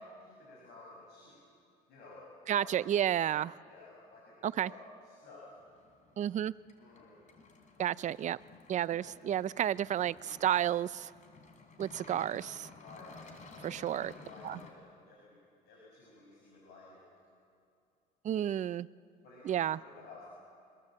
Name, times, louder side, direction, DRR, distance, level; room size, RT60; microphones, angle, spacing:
voice 1, 0.0-1.4 1.9-2.2 2.6-2.7 3.2-3.3 3.6-5.5 6.8-7.2 8.9-9.1 12.8-13.2 13.5-15.4 15.7-17.0 19.2-20.3, left 2 dB, 75° left, -3 dB, 6.8 m, -53 dB
voice 2, 2.5-3.5 4.4-4.7 6.2-6.5 7.8-8.4 8.7-11.1 11.8-12.7 13.6-14.1 14.4-14.6 18.2-18.9 19.4-19.8, right 11 dB, 45° right, 18 dB, 0.5 m, -31 dB
sound 1, 5.5-14.7, left 4 dB, 45° left, 3.4 m, -54 dB
25.5 x 21.5 x 7.6 m, 2.5 s
cardioid pair, 110°, 17 cm